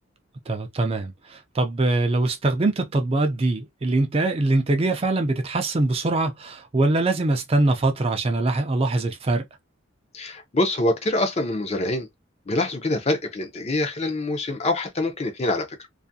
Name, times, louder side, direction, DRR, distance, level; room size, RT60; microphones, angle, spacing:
voice 1, 0.5-9.4, right 2 dB, 30° right, 0.4 m, -23 dB
voice 2, 10.1-12.1 12.5-15.8, left 2 dB, 30° left, 0.5 m, -25 dB
2.5 x 2.4 x 2.6 m
head